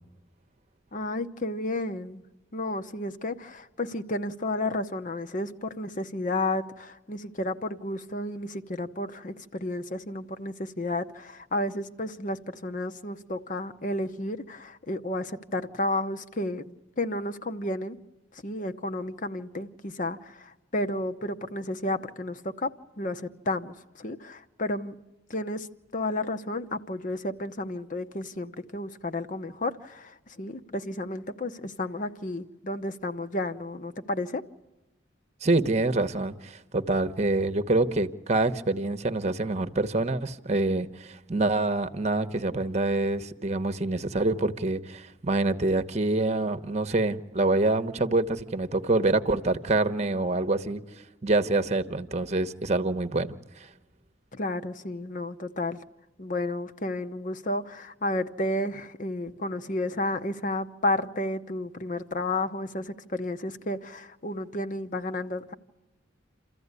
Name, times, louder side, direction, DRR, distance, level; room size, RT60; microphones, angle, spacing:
voice 1, 0.9-2.2 2.5-18.0 18.4-22.7 23.0-25.0 25.3-25.7 25.9-34.4 54.3-55.8 56.2-65.5, left 1 dB, 40° left, 0.9 m, -32 dB
voice 2, 35.4-50.8 51.2-53.7, right 2 dB, 35° right, 1.0 m, -26 dB
28.5 x 14.5 x 9.7 m
head